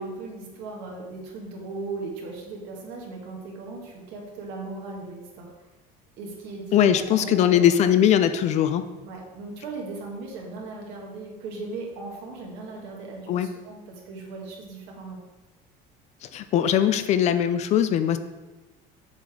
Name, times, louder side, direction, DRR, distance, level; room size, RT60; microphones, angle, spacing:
voice 1, 0.0-5.5 6.2-7.8 9.0-15.2, right 3 dB, 65° right, -1 dB, 2.1 m, -38 dB
voice 2, 6.7-8.9 13.3-13.5 16.3-18.2, left 10 dB, 40° left, 11 dB, 0.4 m, -20 dB
7.2 x 6.8 x 3.7 m, 1.1 s
cardioid pair, 155°, 18 cm